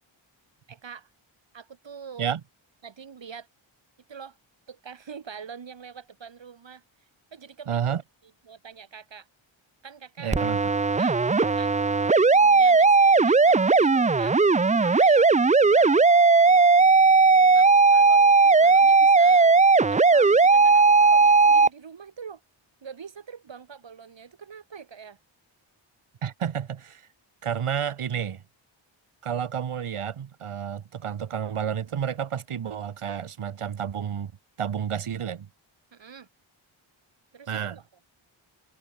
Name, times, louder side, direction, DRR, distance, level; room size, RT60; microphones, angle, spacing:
voice 1, 0.7-1.1 1.5-2.3 2.8-3.5 4.1-4.4 4.7-6.8 7.3-7.7 8.4-9.3 9.8-10.4 11.0-12.0 12.3-14.4 14.8-15.3 15.7-16.7 17.4-19.5 19.9-22.4 22.8-25.2 35.9-36.3 37.3-37.9, right 6 dB, 60° right, 4.4 m, -44 dB
voice 2, 7.7-8.0 10.2-10.6 26.2-27.0 27.4-28.4 29.2-34.3 34.6-35.5 37.5-37.8, right 8 dB, 90° right, 2.8 m, -30 dB
sound 1, 10.3-21.7, right 4 dB, 15° right, 0.4 m, -17 dB
wide cardioid pair, 135°, 49 cm